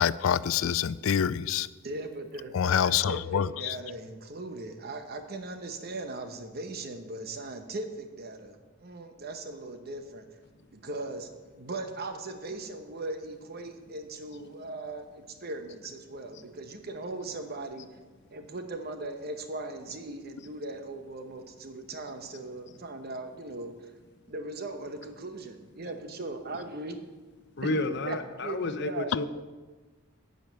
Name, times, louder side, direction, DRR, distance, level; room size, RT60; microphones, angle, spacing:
voice 1, 0.0-1.7 2.5-3.5, left 8 dB, 80° left, 0.4 m, -26 dB
voice 2, 1.8-10.3 10.7-17.9 18.3-23.9 24.3-27.0 27.6-27.7 28.1-29.1, right 2 dB, 50° right, 1.0 m, -39 dB
voice 3, 27.6-29.3, left 2 dB, 60° left, 0.8 m, -31 dB
11.5 x 5.3 x 7.9 m
head